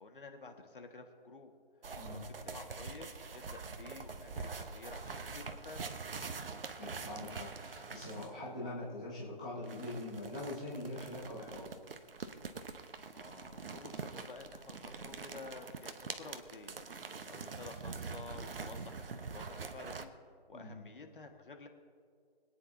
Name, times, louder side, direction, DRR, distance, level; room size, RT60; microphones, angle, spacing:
voice 1, 0.0-1.5 2.0-5.9 13.1-20.1 20.5-21.7, left 4 dB, 55° left, 4 dB, 1.7 m, -51 dB
sound 1, 1.8-8.4 9.6-20.0, right 4 dB, 65° right, 1.0 m, -45 dB
voice 2, 6.8-11.7 20.5-20.8, left 1 dB, 5° left, -10 dB, 0.7 m, -43 dB
26.0 x 9.6 x 2.8 m, 2.2 s
hypercardioid pair, 175°, 31 cm